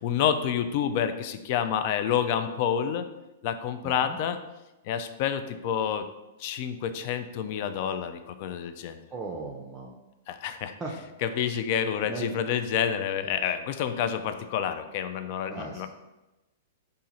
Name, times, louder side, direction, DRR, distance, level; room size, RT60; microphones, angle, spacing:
voice 1, 0.0-3.1 3.4-4.4 4.9-6.0 6.4-9.0 10.3-10.7 11.2-15.9, left 8 dB, 50° left, 9 dB, 0.3 m, -28 dB
voice 2, 3.8-4.2 9.1-10.0 10.8-10.9 12.0-12.4 15.5-15.9, right 3 dB, 20° right, -2 dB, 0.4 m, -37 dB
2.7 x 2.5 x 4.0 m, 1.0 s
hypercardioid pair, 120°, 0 cm